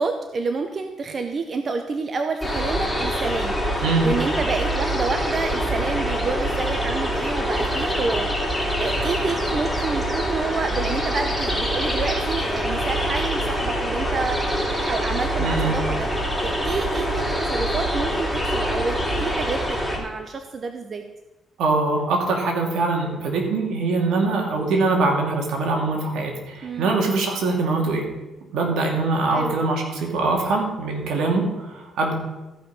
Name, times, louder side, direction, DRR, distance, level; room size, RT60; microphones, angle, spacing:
voice 1, 0.0-16.1 16.4-21.0 26.6-26.9 29.3-29.6, right 4 dB, 45° right, 6 dB, 0.8 m, -29 dB
sound 1, 2.4-20.0, equal, ahead, 3.0 m, -25 dB
voice 2, 15.4-15.7 21.6-28.1 28.5-32.1, right 3 dB, 80° right, 1 dB, 2.5 m, -23 dB
14.0 x 5.5 x 5.5 m, 1.0 s
cardioid pair, 90°, 0 cm